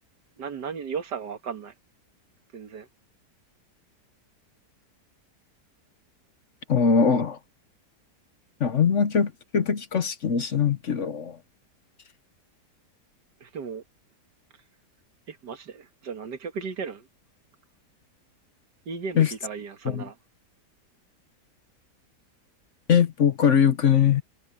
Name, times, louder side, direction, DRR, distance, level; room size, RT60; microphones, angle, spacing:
voice 1, 0.4-1.7 2.5-2.9 13.4-13.8 15.3-17.1 18.9-20.2, right 6 dB, 80° right, 2.1 m, -35 dB
voice 2, 6.7-7.4 8.6-11.4 19.1-19.3 19.8-20.0 22.9-24.2, left 7 dB, 50° left, 1.2 m, -21 dB
omnidirectional pair, 1.8 m